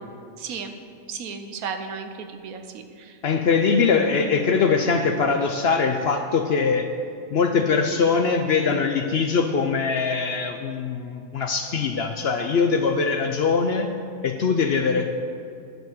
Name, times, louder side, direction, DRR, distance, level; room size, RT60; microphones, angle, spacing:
voice 1, 0.4-0.7 1.1-3.2, right 6 dB, 85° right, 6 dB, 1.2 m, -34 dB
voice 2, 3.2-6.9 7.3-13.9 14.2-15.1, left 5 dB, 60° left, 5 dB, 0.7 m, -22 dB
10.5 x 4.6 x 7.7 m, 2.4 s
omnidirectional pair, 1.5 m